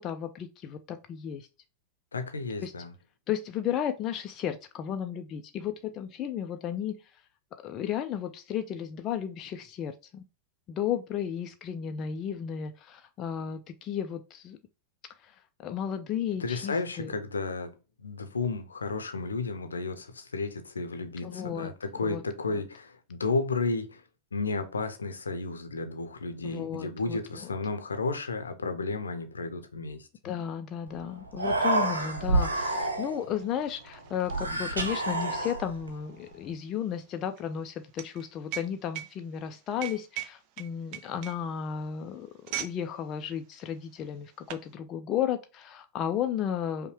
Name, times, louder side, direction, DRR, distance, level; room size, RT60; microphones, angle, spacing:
voice 1, 0.0-1.5 2.6-2.7 3.3-7.2 7.6-10.2 10.7-14.6 15.2-17.1 21.2-22.2 22.5-22.6 26.4-27.5 30.2-46.9, left 9 dB, 35° left, 0.4 m, -34 dB
voice 2, 2.1-2.9 16.4-24.0 24.3-30.1, left 3 dB, 75° left, 0.6 m, -33 dB
Human voice, 30.9-31.0 31.3-33.3 34.2-35.9, right 2 dB, 75° right, 0.7 m, -28 dB
sound 1, 33.0-42.8 43.1-43.4 44.1-44.7, right 11 dB, 40° right, 0.5 m, -41 dB
5.3 x 2.2 x 3.0 m
figure-of-eight pair, 90°, 0 cm